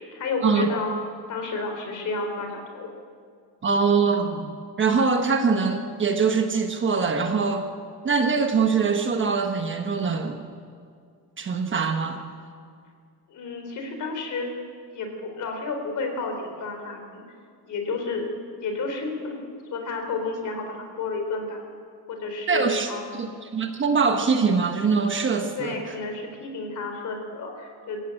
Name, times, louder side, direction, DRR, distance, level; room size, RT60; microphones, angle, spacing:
voice 1, 0.1-0.9 1.3-2.9 13.3-14.6 14.9-17.2 17.7-18.3 18.6-19.4 19.7-21.6 22.1-23.2 25.6-28.0, left 3 dB, 50° left, 4 dB, 3.8 m, -31 dB
voice 2, 3.6-4.5 4.8-7.7 8.0-10.4 11.4-12.2 22.5-22.9 23.2-25.8, right 5 dB, 30° right, 5 dB, 1.2 m, -23 dB
26.5 x 15.0 x 8.9 m, 2.3 s
cardioid pair, 175°, 39 cm